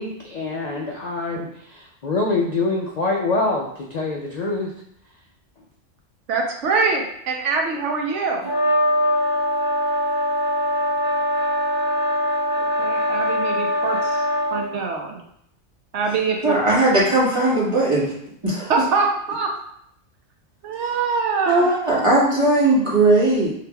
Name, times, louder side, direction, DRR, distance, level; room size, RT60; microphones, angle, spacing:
voice 1, 0.0-4.7, left 3 dB, 60° left, -1 dB, 0.4 m, -25 dB
voice 2, 6.3-8.5 12.6-15.2 15.9-16.6 18.7-19.5 20.6-21.7, right 4 dB, 75° right, 2 dB, 1.0 m, -24 dB
sound 1, 8.4-14.7, equal, 45° right, 1.1 m, -22 dB
voice 3, 16.4-18.1 18.4-18.7 21.4-23.5, right 2 dB, 25° right, -7 dB, 1.5 m, -18 dB
5.7 x 3.3 x 2.2 m, 0.72 s
omnidirectional pair, 1.3 m